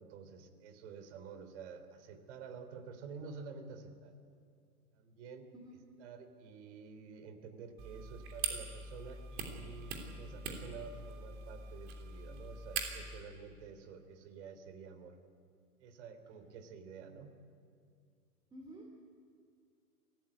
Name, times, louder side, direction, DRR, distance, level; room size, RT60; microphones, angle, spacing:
voice 1, 0.0-4.1 4.9-5.5 6.0-15.2 15.8-17.3, right 5 dB, 45° right, 9 dB, 3.2 m, -50 dB
sound 1, 7.8-13.2, right 4 dB, 25° right, 3.2 m, -42 dB
voice 2, 18.5-18.9, right 1 dB, 10° right, -1 dB, 2.9 m, -50 dB
24.5 x 17.0 x 9.5 m, 2.2 s
hypercardioid pair, 125°, 47 cm